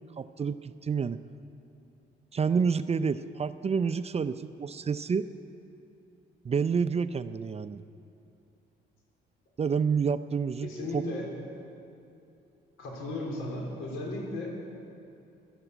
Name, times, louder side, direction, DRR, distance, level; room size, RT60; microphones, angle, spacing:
voice 1, 0.2-1.2 2.3-5.3 6.4-7.8 9.6-11.0, right 5 dB, 30° right, 13 dB, 0.5 m, -29 dB
voice 2, 10.6-11.2 12.8-14.7, left 1 dB, 85° left, -1 dB, 3.7 m, -35 dB
15.0 x 12.0 x 8.1 m, 2.7 s
cardioid pair, 90°, 20 cm